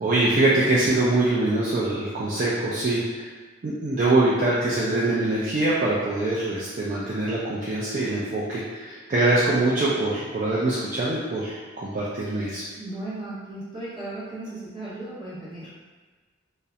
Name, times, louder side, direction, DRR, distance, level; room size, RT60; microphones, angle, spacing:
voice 1, 0.0-3.3 3.6-12.6, right 2 dB, 40° right, -8 dB, 0.3 m, -23 dB
voice 2, 12.7-15.7, right 2 dB, 25° right, -10 dB, 0.8 m, -36 dB
2.3 x 2.0 x 2.7 m, 1.4 s
head